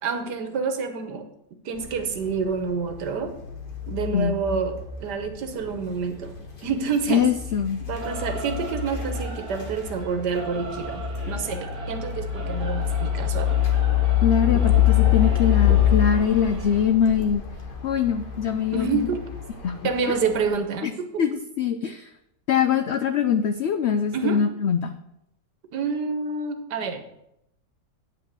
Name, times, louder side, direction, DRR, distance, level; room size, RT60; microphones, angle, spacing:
voice 1, 0.0-1.3 1.6-3.3 3.9-6.4 6.6-7.3 7.9-13.6 18.7-19.2 19.8-21.2 24.1-24.4 25.7-27.0, right 5 dB, 85° right, 7 dB, 1.7 m, -28 dB
sound 1, 1.8-20.5, left 11 dB, 35° left, 1.3 m, -26 dB
voice 2, 7.1-7.8 14.2-17.4 17.8-19.1 19.6-20.2 20.8-20.9 21.2-22.1 22.5-25.0, left 7 dB, 85° left, 10 dB, 0.5 m, -23 dB
Singing / Musical instrument, 7.9-16.8, right 4 dB, 45° right, 1.9 m, -39 dB
8.7 x 5.4 x 7.4 m, 0.80 s
omnidirectional pair, 1.7 m